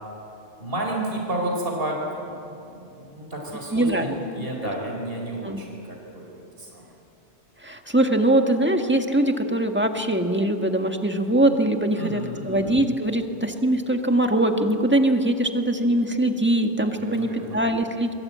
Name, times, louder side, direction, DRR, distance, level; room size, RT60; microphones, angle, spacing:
voice 1, 0.6-6.8 11.9-12.7 17.0-17.6, right 1 dB, 55° right, 0 dB, 4.6 m, -31 dB
voice 2, 3.7-4.7 5.4-5.6 7.6-18.1, right 1 dB, 10° right, 4 dB, 1.8 m, -22 dB
28.0 x 23.5 x 8.8 m, 2.9 s
omnidirectional pair, 1.2 m